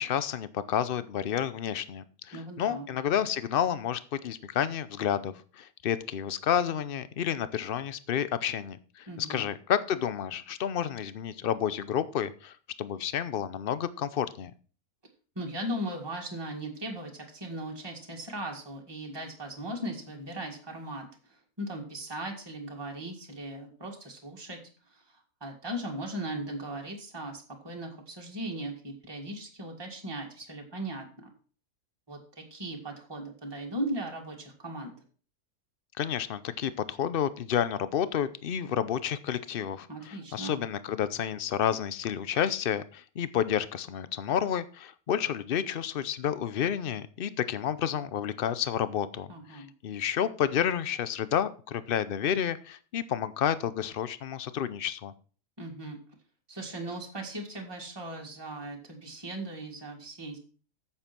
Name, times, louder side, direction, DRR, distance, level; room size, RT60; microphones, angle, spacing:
voice 1, 0.0-14.5 36.0-55.1, left 9 dB, 55° left, 15 dB, 0.6 m, -30 dB
voice 2, 2.3-2.9 9.1-9.4 15.4-21.1 21.6-24.6 24.9-31.3 32.1-34.9 39.9-40.6 49.3-49.7 55.6-56.0 56.5-60.4, right 1 dB, 15° right, 0 dB, 1.9 m, -38 dB
8.8 x 7.1 x 6.0 m, 0.40 s
omnidirectional pair, 1.6 m